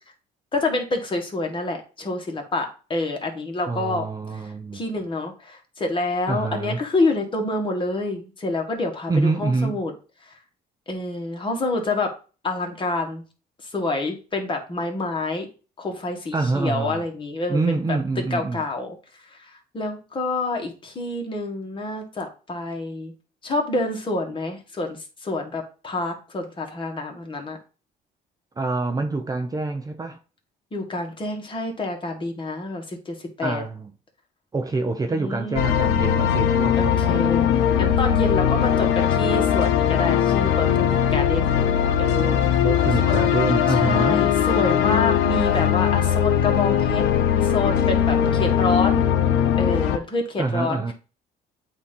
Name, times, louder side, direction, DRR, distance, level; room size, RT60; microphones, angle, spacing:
voice 1, 0.5-4.1 4.3-9.9 10.9-12.1 12.4-13.2 13.7-15.5 15.8-17.6 18.3-19.0 19.4-23.1 23.4-27.6 30.7-33.6 35.1-36.2 36.8-41.6 42.0-42.7 43.7-47.1 47.4-49.0 49.6-50.8, left 2 dB, 30° left, 1.8 m, -27 dB
voice 2, 3.7-4.8 6.3-6.8 9.1-9.8 16.3-17.0 17.5-18.6 28.6-30.2 33.4-33.9 34.5-37.2 42.6-44.2 50.4-50.9, right 3 dB, 20° right, 0.6 m, -26 dB
sound 1, 35.6-50.0, left 9 dB, 90° left, 0.7 m, -20 dB
8.1 x 2.9 x 5.2 m
cardioid pair, 110°, 17 cm